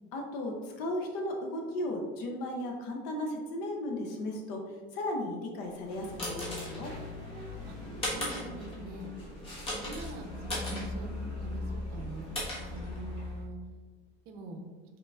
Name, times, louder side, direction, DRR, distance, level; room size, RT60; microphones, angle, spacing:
voice 1, 0.1-4.6 4.9-6.9, left 1 dB, 65° left, 2 dB, 0.7 m, -35 dB
sound 1, 5.7-13.4, left 1 dB, 25° left, 1.3 m, -38 dB
voice 2, 8.1-9.1 9.4-11.1 11.4-12.3 12.7-13.6 14.3-14.6, right 2 dB, 50° right, 4 dB, 0.7 m, -43 dB
5.6 x 3.6 x 2.4 m, 1.4 s
cardioid pair, 175°, 21 cm